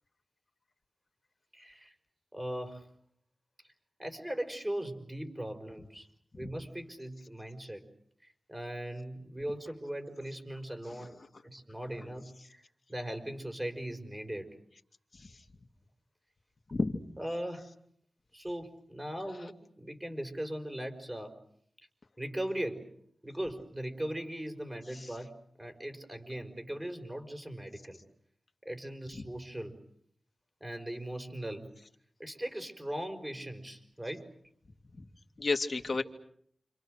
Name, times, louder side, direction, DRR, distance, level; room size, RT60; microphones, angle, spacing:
voice 1, 1.5-1.9 2.3-2.9 4.0-6.1 6.4-7.8 8.5-11.2 11.4-12.6 12.9-14.5 17.2-17.7 18.3-21.3 22.2-22.9 23.2-25.3 25.6-28.0 28.7-29.8 30.6-31.7 32.2-34.3, right 1 dB, 15° right, 6 dB, 5.2 m, -39 dB
voice 2, 35.4-36.0, left 3 dB, 55° left, 5 dB, 2.5 m, -32 dB
29.5 x 27.0 x 6.5 m, 0.68 s
cardioid pair, 60°, 0 cm